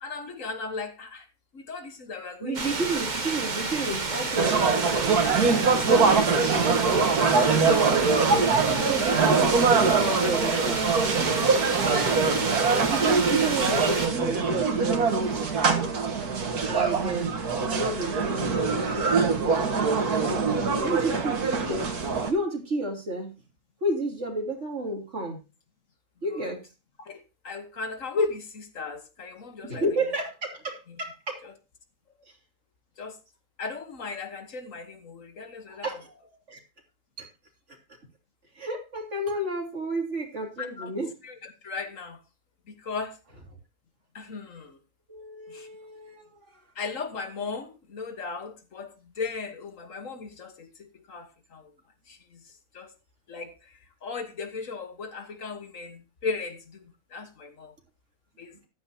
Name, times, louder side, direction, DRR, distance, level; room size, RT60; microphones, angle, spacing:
voice 1, 0.0-1.2 1.5-2.6 11.4-11.9 27.1-27.2 27.4-29.8 33.0-33.1 33.6-35.9 40.6-40.9 41.2-41.3 41.6-42.2 42.8-43.1 44.1-44.8 45.5-45.7 46.8-48.9 49.2-51.3 51.5-51.6 52.1-52.2 52.7-52.9 53.3-53.5 54.0-56.6 57.1-57.7 58.4-58.5, left 4 dB, 60° left, 1.6 m, -35 dB
voice 2, 2.4-5.2 5.8-8.0 8.6-10.9 12.9-15.5 16.7-20.5 20.8-22.0 22.2-23.3 23.8-25.4 26.2-26.6 29.6-31.4 32.3-32.4 35.7-36.6 37.2-37.3 37.7-37.8 38.5-41.2 45.1-46.4, right 1 dB, 50° right, 3.4 m, -32 dB
sound 1, 2.5-14.1, right 3 dB, 30° right, 1.3 m, -30 dB
sound 2, 4.4-22.3, right 4 dB, 90° right, 2.1 m, -23 dB
14.0 x 11.5 x 2.8 m
omnidirectional pair, 1.6 m